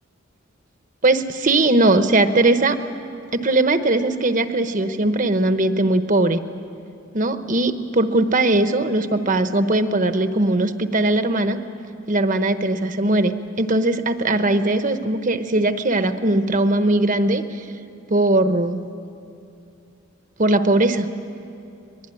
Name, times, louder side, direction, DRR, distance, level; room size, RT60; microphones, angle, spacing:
voice 1, 1.0-2.8 3.3-6.4 7.1-11.6 12.1-17.6 18.1-18.8 20.4-21.1, right 2 dB, 40° right, 9 dB, 1.0 m, -19 dB
24.5 x 21.0 x 10.0 m, 2.6 s
head